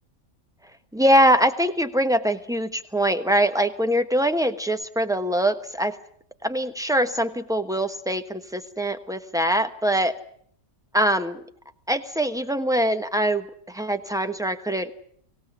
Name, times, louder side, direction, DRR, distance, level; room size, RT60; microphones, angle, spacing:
voice 1, 0.9-6.0 6.4-10.2 10.9-11.4 11.9-14.9, right 1 dB, 5° right, 8 dB, 1.1 m, -23 dB
24.5 x 17.0 x 9.5 m, 0.65 s
omnidirectional pair, 1.5 m